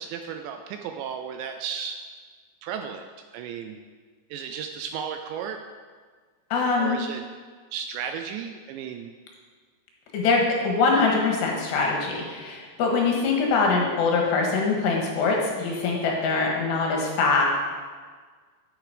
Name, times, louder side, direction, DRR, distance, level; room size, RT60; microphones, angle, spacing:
voice 1, 0.0-2.0 2.6-3.0 3.3-3.8 4.3-5.6 6.8-7.2 7.7-9.1, right 7 dB, 80° right, 6 dB, 2.6 m, -34 dB
voice 2, 6.5-7.0 10.1-17.4, left 4 dB, 70° left, -1 dB, 3.3 m, -23 dB
9.6 x 9.5 x 5.0 m, 1.5 s
omnidirectional pair, 5.5 m